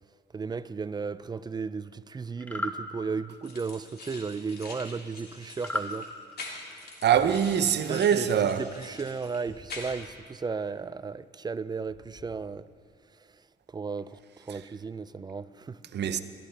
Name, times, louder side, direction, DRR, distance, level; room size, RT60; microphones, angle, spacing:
voice 1, 0.3-6.1 7.2-7.4 7.9-12.6 13.7-15.8, right 5 dB, 20° right, 0.4 m, -35 dB
sound 1, 2.4-2.8 5.6-5.9, left 1 dB, 10° left, 1.1 m, -32 dB
sound 2, 3.4-10.1, left 2 dB, 50° left, 2.9 m, -45 dB
voice 2, 7.0-8.7 14.5-14.6 15.9-16.2, right 8 dB, 60° right, 0.8 m, -24 dB
sound 3, 7.1-7.7 9.4-10.0 11.8-12.3, left 2 dB, 70° left, 3.3 m, -52 dB
21.0 x 13.0 x 3.4 m
cardioid pair, 90°, 20 cm